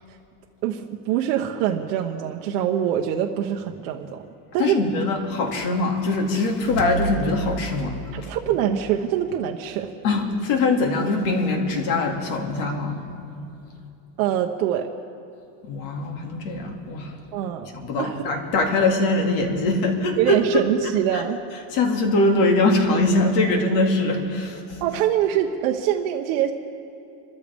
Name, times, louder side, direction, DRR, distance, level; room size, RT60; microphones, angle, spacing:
voice 1, 0.6-4.2 4.5-4.8 8.1-9.9 14.2-14.9 17.3-17.7 18.0-18.2 20.2-21.4 24.8-26.5, right 10 dB, 65° right, 2 dB, 1.0 m, -24 dB
voice 2, 4.6-8.3 10.0-13.1 15.6-17.2 17.7-20.6 21.1-21.2 21.7-24.8, left 2 dB, 55° left, 2 dB, 2.5 m, -22 dB
sound 1, 6.2-9.5, right 2 dB, 85° left, 2.0 m, -33 dB
27.5 x 13.5 x 3.6 m, 2.7 s
cardioid pair, 165°, 45 cm